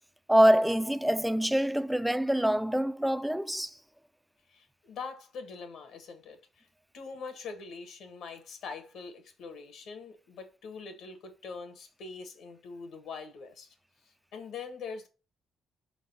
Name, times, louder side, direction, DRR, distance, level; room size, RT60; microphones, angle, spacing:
voice 1, 0.3-3.7, equal, 5° right, 0.4 m, -25 dB
voice 2, 4.5-6.7 6.9-13.7 14.3-15.1, left 5 dB, 75° left, 1.5 m, -43 dB
5.3 x 4.0 x 5.2 m
cardioid pair, 90°, 0 cm